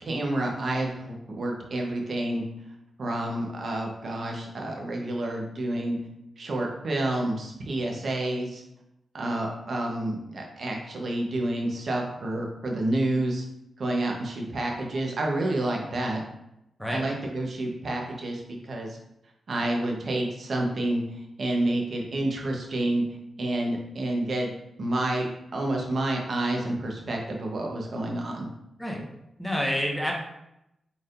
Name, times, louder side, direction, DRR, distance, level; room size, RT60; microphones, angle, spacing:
voice 1, 0.0-2.4 3.0-6.0 6.4-8.6 9.1-13.4 13.8-16.2 16.9-19.0 19.5-23.0 23.4-24.5 24.8-25.3 25.5-28.5, right 1 dB, 60° right, 0 dB, 0.9 m, -29 dB
voice 2, 29.4-30.1, equal, ahead, -2 dB, 1.2 m, -28 dB
4.2 x 3.4 x 2.5 m, 0.85 s
cardioid pair, 55°, 0 cm